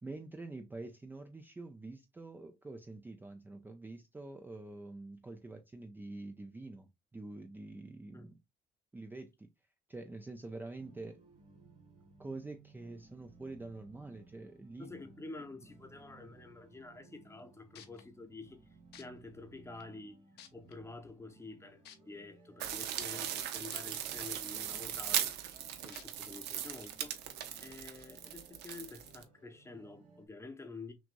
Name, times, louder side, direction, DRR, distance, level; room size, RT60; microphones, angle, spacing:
voice 1, 0.0-8.4 8.9-9.5 9.9-11.2 12.2-14.9, right 2 dB, 10° right, 0.5 m, -46 dB
sound 1, 10.8-30.3, right 3 dB, 40° right, 1.9 m, -61 dB
voice 2, 14.8-18.6 19.0-20.2 20.5-25.3 25.8-27.2 27.6-30.9, left 3 dB, 15° left, 0.8 m, -49 dB
sound 2, 17.4-17.5 17.7-18.0 18.9-19.0 19.8-19.9 20.4-20.7 21.8-22.0 23.7-23.8 24.3-24.4 25.9-26.0 26.8-26.9, left 10 dB, 75° left, 0.8 m, -53 dB
sound 3, 22.6-29.2, right 10 dB, 80° right, 0.8 m, -38 dB
6.0 x 2.5 x 2.5 m
cardioid pair, 110°, 17 cm